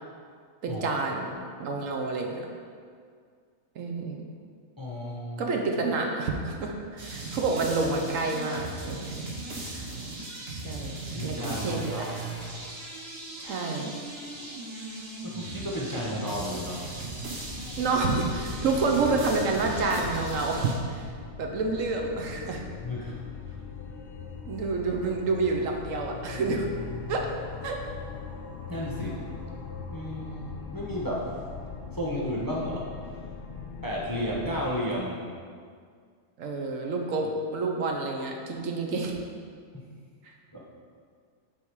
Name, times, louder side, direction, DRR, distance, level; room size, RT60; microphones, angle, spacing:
voice 1, 0.6-1.3 1.6-2.5 3.8-4.2 5.4-9.1 9.6-9.8 10.5-12.0 13.4-13.9 17.8-22.6 24.5-26.7 27.1-27.3 27.6-27.8 36.4-39.1 40.2-40.3, right 3 dB, 70° right, 2 dB, 1.1 m, -29 dB
voice 2, 4.8-5.6 11.1-12.1 15.2-16.9 22.8-23.2 28.7-29.3 29.9-31.3 31.9-33.2 33.8-35.2 38.9-39.1 39.7-39.9 40.5-40.6, equal, 20° left, -5 dB, 0.7 m, -33 dB
sound 1, 7.0-20.7, right 2 dB, 50° right, 1.3 m, -38 dB
sound 2, 16.5-34.7, left 5 dB, 65° left, 0.5 m, -41 dB
8.4 x 3.6 x 4.7 m, 2.1 s
omnidirectional pair, 1.5 m